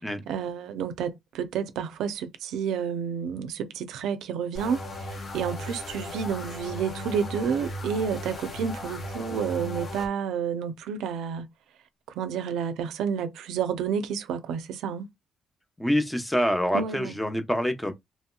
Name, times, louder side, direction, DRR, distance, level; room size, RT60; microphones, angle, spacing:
voice 1, 0.3-11.5 12.1-15.1 16.7-17.1, right 7 dB, 85° right, 0.4 m, -30 dB
sound 1, 4.5-10.1, left 1 dB, 45° left, 1.2 m, -36 dB
voice 2, 15.8-17.9, equal, 5° left, 0.7 m, -26 dB
3.0 x 2.8 x 2.2 m
cardioid pair, 90°, 0 cm